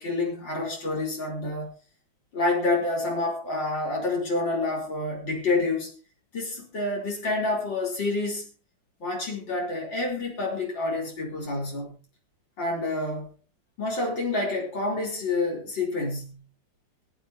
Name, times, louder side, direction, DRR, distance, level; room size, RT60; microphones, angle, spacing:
voice 1, 0.0-1.7 2.3-5.9 6.3-8.5 9.0-12.0 12.6-13.3 13.8-16.4, left 2 dB, 90° left, 5.0 m, -28 dB
22.5 x 10.0 x 3.1 m
omnidirectional pair, 2.0 m